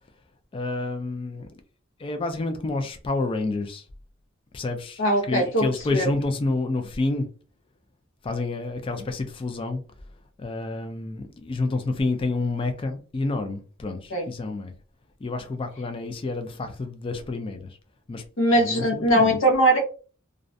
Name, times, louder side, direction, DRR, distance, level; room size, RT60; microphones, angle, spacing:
voice 1, 0.5-1.6 2.0-3.9 4.5-7.3 8.2-9.8 10.4-14.7 15.2-17.8 18.1-18.2 18.5-19.4, left 3 dB, 25° left, 0.3 m, -29 dB
voice 2, 5.0-5.7 5.9-6.1 14.1-14.3 18.4-19.8, right 1 dB, 70° left, 0.8 m, -20 dB
2.4 x 2.1 x 2.5 m
head